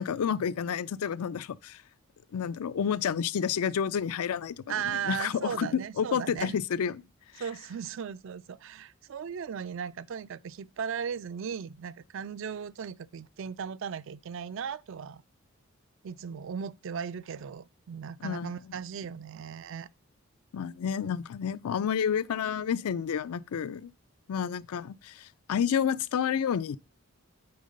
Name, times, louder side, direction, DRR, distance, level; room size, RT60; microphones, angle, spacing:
voice 1, 0.0-1.8 2.3-7.0 7.3-7.4 18.2-18.5 20.5-23.9 24.3-26.8, left 7 dB, 85° left, 0.4 m, -30 dB
voice 2, 4.7-6.6 7.4-15.2 16.0-19.9, right 7 dB, 60° right, 0.3 m, -37 dB
8.7 x 3.7 x 5.3 m
head